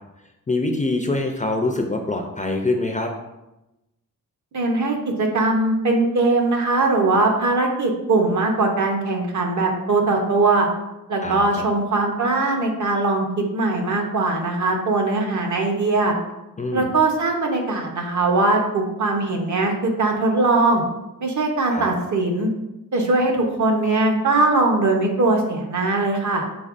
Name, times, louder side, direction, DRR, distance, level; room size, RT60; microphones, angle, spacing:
voice 1, 0.5-3.1 11.2-11.4 16.6-16.9 21.7-21.9, left 2 dB, 25° left, 3 dB, 0.4 m, -24 dB
voice 2, 4.5-10.7 11.1-16.1 16.7-20.8 21.2-22.5 22.9-26.4, right 2 dB, 55° right, 2 dB, 0.8 m, -20 dB
5.2 x 3.8 x 2.5 m, 0.96 s
wide cardioid pair, 135°, 34 cm